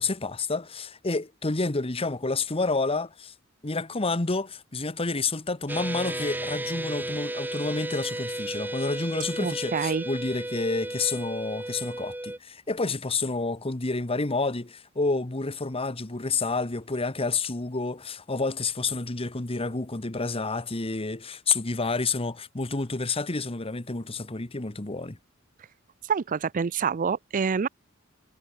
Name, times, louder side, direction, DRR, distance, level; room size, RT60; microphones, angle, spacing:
voice 1, 0.0-3.3 3.6-25.2, left 3 dB, 30° left, 1.2 m, -29 dB
sound 1, 5.7-12.4, right 1 dB, 10° right, 1.3 m, -34 dB
voice 2, 9.4-10.0 26.0-27.7, right 6 dB, 40° right, 0.4 m, -27 dB
head